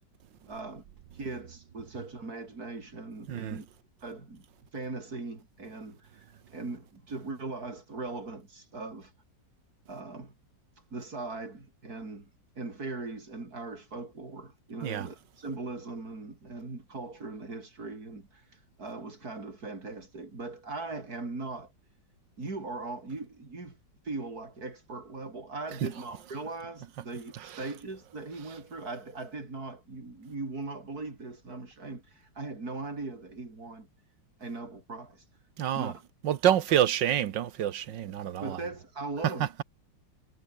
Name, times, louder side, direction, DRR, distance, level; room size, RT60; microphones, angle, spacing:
voice 1, 0.5-0.8 1.1-3.7 4.0-4.5 4.7-9.1 9.9-10.3 10.9-12.3 12.6-21.7 22.4-23.8 24.0-33.9 34.4-35.2 35.7-36.0 38.4-39.6, right 3 dB, 55° right, 5.2 m, -39 dB
voice 2, 3.3-3.6 14.8-15.1 25.8-25.9 27.3-27.7 35.6-35.9 36.2-38.6 39.2-39.5, right 10 dB, 75° right, 1.8 m, -28 dB
omnidirectional pair, 2.0 m